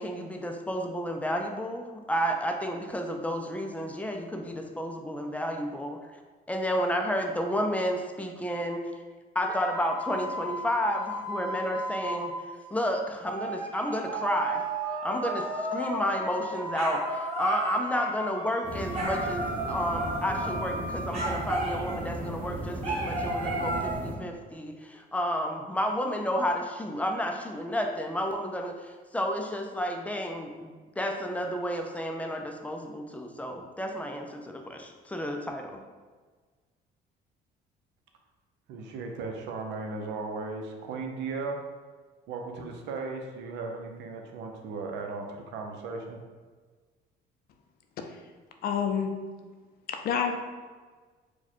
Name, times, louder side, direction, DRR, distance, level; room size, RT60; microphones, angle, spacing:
voice 1, 0.0-6.0 6.5-8.8 9.3-12.3 12.7-14.7 15.0-35.8, equal, 10° left, 3 dB, 0.4 m, -31 dB
sound 1, 9.4-12.5 13.2-22.2 22.8-23.9, right 1 dB, 35° right, 1.3 m, -33 dB
sound 2, 18.6-24.1, equal, 10° right, 0.8 m, -36 dB
voice 2, 38.7-41.6 42.3-46.2, right 4 dB, 85° right, 3 dB, 0.7 m, -36 dB
voice 3, 48.6-49.1 49.9-50.4, left 7 dB, 60° left, 5 dB, 0.5 m, -27 dB
4.7 x 2.2 x 4.3 m, 1.4 s
cardioid pair, 145°, 18 cm